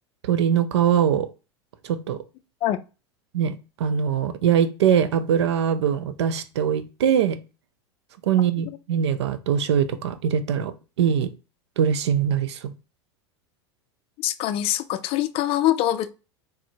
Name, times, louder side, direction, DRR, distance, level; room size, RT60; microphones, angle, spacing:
voice 1, 0.2-1.3 1.8-2.2 3.3-7.4 8.3-10.7 11.0-11.3 11.8-12.7, right 8 dB, 75° right, 0.5 m, -22 dB
voice 2, 14.2-16.1, left 13 dB, 40° left, 0.4 m, -24 dB
4.2 x 2.0 x 2.7 m
hypercardioid pair, 90°, 14 cm